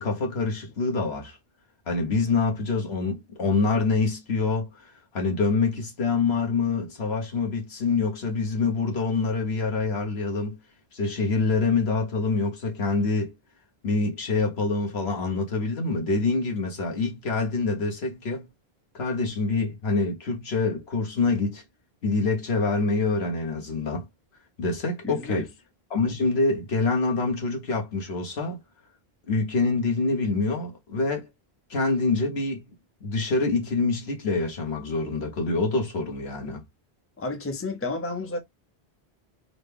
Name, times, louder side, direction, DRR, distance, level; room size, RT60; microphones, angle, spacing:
voice 1, 0.0-1.4 1.9-10.6 10.9-13.3 13.8-18.5 18.9-21.6 22.0-24.1 24.6-25.5 25.9-28.6 29.3-31.3 31.7-32.6 33.0-36.6, left 3 dB, 85° left, 1.4 m, -26 dB
voice 2, 25.0-25.5 37.2-38.4, left 2 dB, 15° left, 0.6 m, -31 dB
3.9 x 2.2 x 3.4 m
omnidirectional pair, 1.0 m